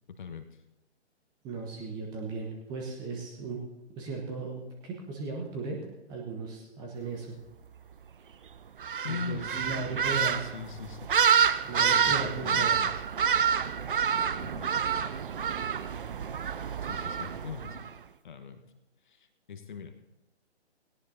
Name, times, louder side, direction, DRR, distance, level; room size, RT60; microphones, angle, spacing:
voice 1, 1.4-3.6 4.0-5.8 6.1-7.4 9.1-10.5 11.6-12.7, right 4 dB, 10° right, 0 dB, 1.0 m, -36 dB
sound 1, 8.8-17.9, right 7 dB, 50° right, 0.5 m, -28 dB
voice 2, 9.0-11.1 11.8-13.0 14.4-14.7 16.8-17.9 18.2-18.6 19.0-20.0, left 6 dB, 45° left, 8 dB, 1.2 m, -41 dB
18.0 x 17.0 x 2.7 m, 1.1 s
figure-of-eight pair, 135°, 34 cm